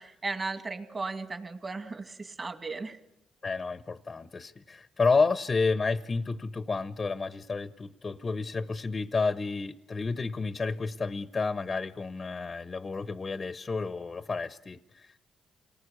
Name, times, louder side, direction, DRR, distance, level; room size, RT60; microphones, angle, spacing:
voice 1, 0.0-3.0, right 3 dB, 30° right, 7 dB, 2.4 m, -36 dB
voice 2, 3.4-15.1, left 4 dB, 30° left, 12 dB, 0.8 m, -30 dB
28.5 x 19.0 x 8.3 m, 0.88 s
cardioid pair, 90°, 0 cm